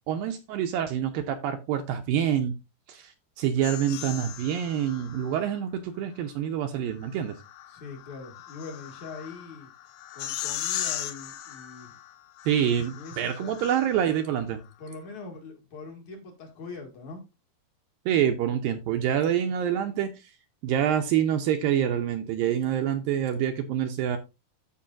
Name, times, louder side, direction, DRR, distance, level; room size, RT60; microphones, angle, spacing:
voice 1, 0.1-2.5 2.9-7.4 12.5-14.6 18.1-20.3 20.6-24.2, right 9 dB, 80° right, 2.2 m, -26 dB
sound 1, 3.6-5.6 7.0-14.2, left 12 dB, 75° left, 2.3 m, -38 dB
voice 2, 7.7-9.7 10.1-12.0 12.9-13.5 14.8-17.2, left 4 dB, 50° left, 3.0 m, -42 dB
14.0 x 5.4 x 2.5 m
omnidirectional pair, 4.6 m